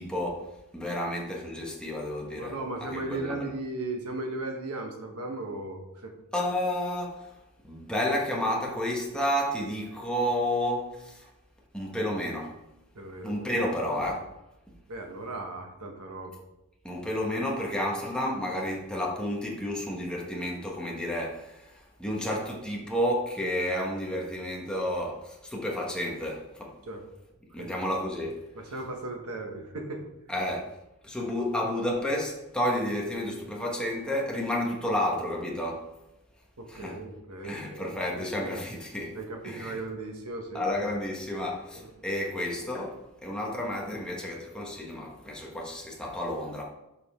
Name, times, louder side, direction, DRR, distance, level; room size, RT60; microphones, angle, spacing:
voice 1, 0.0-2.6 2.9-3.5 6.3-7.4 7.6-11.3 11.7-12.6 13.2-14.3 16.8-26.8 27.5-28.4 30.3-30.8 31.0-35.9 36.7-37.0 37.4-39.2 39.4-39.8 40.5-46.6, left 1 dB, 5° left, 1.2 m, -31 dB
voice 2, 2.4-6.1 12.9-13.6 14.9-16.4 26.9-27.0 27.5-27.7 28.5-30.0 36.6-38.6 39.1-40.9 41.7-41.9, right 2 dB, 80° right, 1.2 m, -37 dB
6.7 x 5.2 x 3.6 m
head